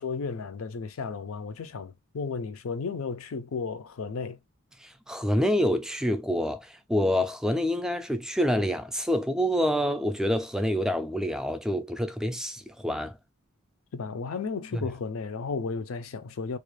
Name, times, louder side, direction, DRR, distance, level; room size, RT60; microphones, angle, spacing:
voice 1, 0.0-4.4 13.9-16.6, left 5 dB, 85° left, 0.5 m, -34 dB
voice 2, 4.8-13.2 14.7-14.9, equal, 5° right, 0.3 m, -27 dB
2.4 x 2.3 x 3.1 m
head